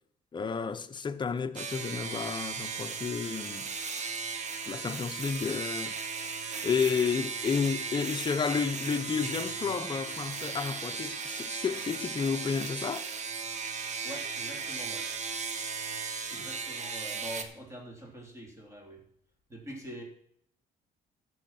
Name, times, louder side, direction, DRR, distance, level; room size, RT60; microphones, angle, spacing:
voice 1, 0.3-3.7 4.7-5.9 6.6-13.0 16.4-16.5, left 6 dB, 25° left, 0.9 m, -31 dB
sound 1, 1.6-17.4, right 5 dB, 45° right, 1.3 m, -36 dB
voice 2, 14.0-15.1 16.3-19.0 19.5-20.0, right 1 dB, 15° right, 3.5 m, -44 dB
14.0 x 6.3 x 6.0 m
cardioid pair, 110°, 17 cm